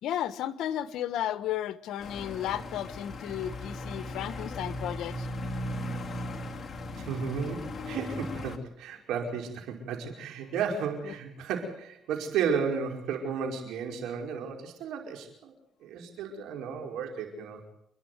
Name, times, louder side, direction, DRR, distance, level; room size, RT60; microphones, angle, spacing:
voice 1, 0.0-5.3 7.0-7.1 11.0-11.2, left 11 dB, 85° left, 14 dB, 1.2 m, -33 dB
sound 1, 2.0-8.6, left 1 dB, 40° left, 2.5 m, -37 dB
voice 2, 7.0-15.5 15.8-17.6, right 6 dB, 90° right, 3 dB, 5.1 m, -33 dB
29.0 x 11.0 x 9.5 m, 0.75 s
cardioid pair, 90°, 0 cm